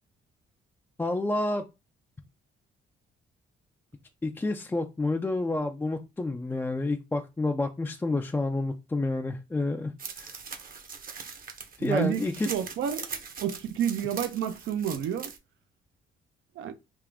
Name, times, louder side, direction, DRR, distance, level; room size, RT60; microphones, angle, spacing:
voice 1, 1.0-1.6 4.2-9.9 10.2-10.3 11.8-12.5, left 2 dB, 10° left, 0.3 m, -29 dB
sound 1, 10.0-15.4, right 5 dB, 45° right, 0.8 m, -41 dB
voice 2, 11.8-15.3 16.6-16.7, right 9 dB, 75° right, 0.6 m, -30 dB
3.5 x 2.5 x 3.4 m
cardioid pair, 90°, 20 cm